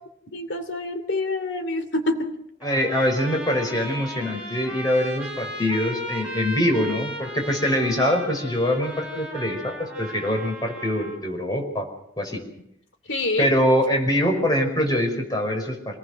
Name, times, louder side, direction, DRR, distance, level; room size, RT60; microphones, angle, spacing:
voice 1, 0.3-2.4 13.1-13.5, left 2 dB, 90° left, 7 dB, 2.7 m, -26 dB
voice 2, 2.6-11.9 12.2-12.4 13.4-16.0, equal, 20° left, 2 dB, 5.2 m, -24 dB
Trumpet, 2.6-11.3, right 1 dB, 5° right, 5.4 m, -36 dB
26.5 x 19.0 x 6.3 m, 0.76 s
head